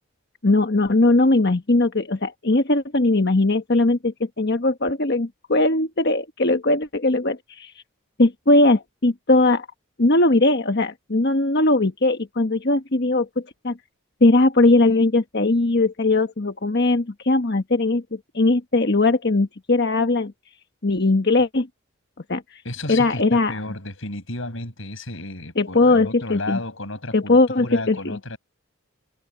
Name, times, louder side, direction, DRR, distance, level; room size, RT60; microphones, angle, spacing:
voice 1, 0.4-7.8 8.2-9.6 10.0-13.8 14.2-20.3 20.8-21.7 22.3-22.6 22.9-23.5 25.6-26.6 27.1-28.2, left 2 dB, 50° left, 1.3 m, -19 dB
voice 2, 22.6-28.4, left 2 dB, 70° left, 7.7 m, -33 dB
head